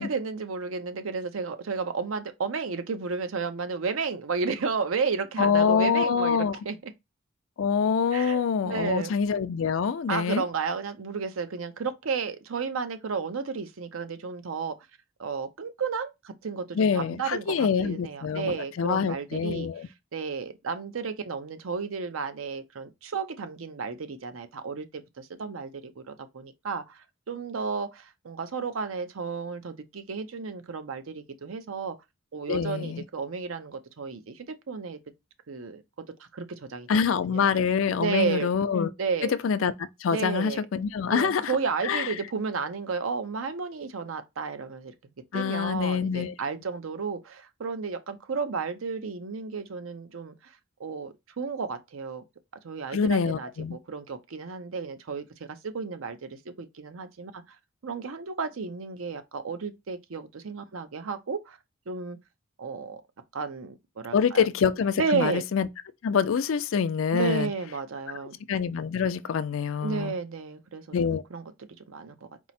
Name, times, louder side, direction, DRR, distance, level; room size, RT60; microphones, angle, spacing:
voice 1, 0.0-6.9 8.1-9.1 10.1-14.7 15.2-19.7 20.1-31.9 32.3-35.0 35.5-35.8 36.2-36.9 37.3-37.4 38.0-38.5 39.0-39.3 40.1-40.6 41.1-44.9 45.3-50.5 50.8-52.2 52.6-57.4 57.8-61.6 61.9-62.2 62.6-63.0 63.3-64.4 65.0-65.4 67.1-68.4 69.8-71.4 71.9-72.1, right 5 dB, 75° right, 0.6 m, -32 dB
voice 2, 5.4-6.5 7.6-10.4 16.7-19.9 32.5-33.0 36.9-38.9 39.2-41.5 41.8-42.1 45.3-46.3 52.9-53.8 64.1-65.7 66.0-67.5 68.5-70.1 70.9-71.2, left 6 dB, 70° left, 0.4 m, -25 dB
4.5 x 2.0 x 4.1 m
head